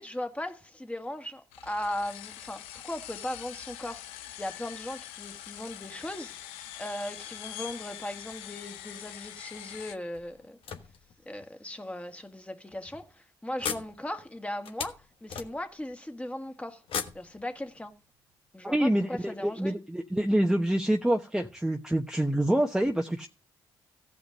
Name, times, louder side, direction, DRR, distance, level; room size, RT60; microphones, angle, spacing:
voice 1, 0.0-6.5 6.8-10.6 11.3-16.8 17.1-17.9 18.5-19.7, left 1 dB, 15° left, 1.8 m, -38 dB
sound 1, 1.5-10.0, left 12 dB, 90° left, 0.6 m, -44 dB
sound 2, 10.1-11.5 12.2-12.3 12.7-12.8 13.6-15.9 16.8-18.0, left 7 dB, 70° left, 1.3 m, -38 dB
voice 2, 18.6-23.3, right 1 dB, 5° right, 1.0 m, -26 dB
14.5 x 5.3 x 6.2 m
supercardioid pair, 50°, 10 cm